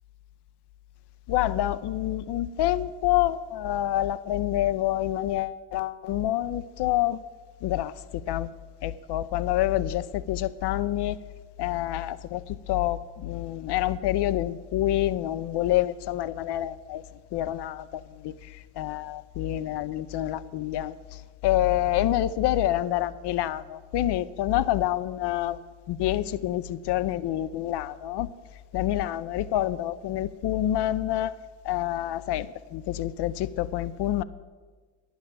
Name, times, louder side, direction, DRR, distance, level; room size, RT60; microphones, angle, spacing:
voice 1, 1.3-7.2 7.6-8.5 8.8-11.2 11.6-17.0 17.3-25.6 25.9-28.3 28.7-31.3 31.6-34.2, left 13 dB, 60° left, 16 dB, 0.7 m, -27 dB
10.5 x 7.1 x 7.5 m, 1.4 s
hypercardioid pair, 55°, 47 cm